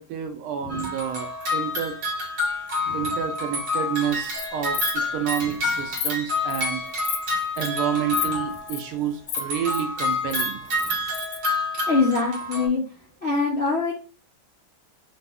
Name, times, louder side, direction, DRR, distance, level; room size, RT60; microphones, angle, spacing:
voice 1, 0.0-2.0 2.9-6.8 7.6-10.6, right 9 dB, 85° right, 5 dB, 1.5 m, -29 dB
sound 1, 0.7-8.9 9.3-12.7, left 2 dB, 60° right, 2.2 m, -28 dB
voice 2, 2.8-3.1 5.4-5.5 10.8-10.9 11.9-12.8 13.2-13.9, left 4 dB, 45° left, -6 dB, 0.9 m, -24 dB
Insect, 4.1-4.5 4.7-5.0 5.3-5.4 5.7-6.1 6.5-6.7 7.0-7.2 7.6-7.7 8.1-8.3 8.5-8.8 9.3-9.8 10.1-11.4, left 8 dB, 80° left, 1.4 m, -30 dB
4.0 x 2.6 x 3.4 m, 0.34 s
omnidirectional pair, 2.3 m